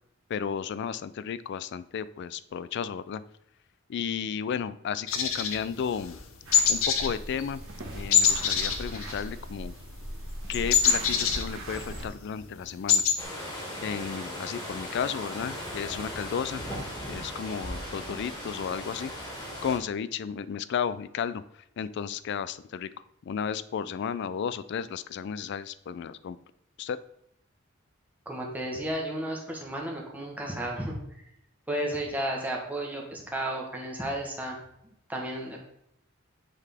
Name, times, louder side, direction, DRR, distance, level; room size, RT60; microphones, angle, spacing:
voice 1, 0.3-3.2 3.9-6.2 6.7-7.6 7.9-9.7 10.5-13.0 13.8-16.6 17.1-19.1 19.6-22.9 23.2-26.4 26.8-27.0, left 7 dB, 60° left, 15 dB, 0.3 m, -33 dB
sound 1, 5.1-6.2 6.5-7.1 7.4-7.6 8.1-9.6 9.9-12.0 12.4-12.5 12.7-13.2, left 7 dB, 85° left, 0.7 m, -24 dB
sound 2, 6.4-12.1, right 1 dB, 90° right, 1.4 m, -39 dB
sound 3, 13.2-19.8, equal, 20° left, 1.8 m, -38 dB
voice 2, 28.2-30.9 31.7-34.6 34.8-35.6, right 1 dB, 10° right, -1 dB, 1.3 m, -33 dB
8.2 x 3.9 x 3.5 m, 0.74 s
head